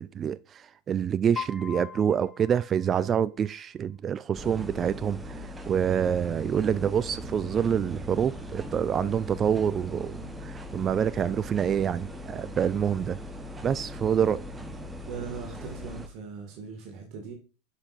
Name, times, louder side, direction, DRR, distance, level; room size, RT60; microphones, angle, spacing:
voice 1, 0.0-13.2 13.6-14.4, right 8 dB, 30° right, 0.3 m, -27 dB
Piano, 1.4-3.4, left 7 dB, 25° left, 1.5 m, -40 dB
sound 1, 4.3-16.1, left 1 dB, 15° right, 0.9 m, -40 dB
voice 2, 15.1-17.3, right 5 dB, 50° right, 1.8 m, -40 dB
7.9 x 5.9 x 2.5 m
figure-of-eight pair, 80°, 0 cm